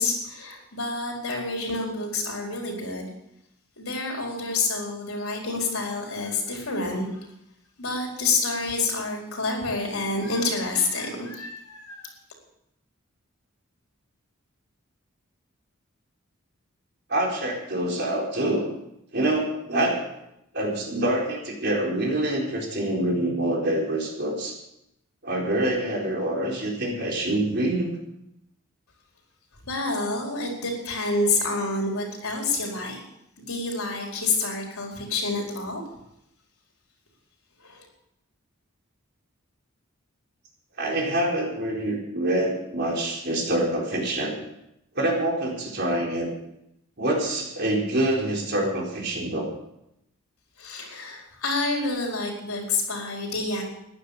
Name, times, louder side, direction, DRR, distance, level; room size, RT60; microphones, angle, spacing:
voice 1, 0.0-3.1 3.8-7.1 7.8-12.1 29.6-33.0 33.4-35.8 37.6-37.9 50.6-53.6, left 3 dB, 85° left, 0 dB, 4.6 m, -28 dB
voice 2, 17.1-18.8 19.1-20.0 20.5-24.5 25.2-27.9 40.8-44.4 44.9-46.3 47.0-49.5, right 1 dB, 50° right, -1 dB, 4.3 m, -26 dB
15.0 x 10.5 x 6.9 m, 0.81 s
head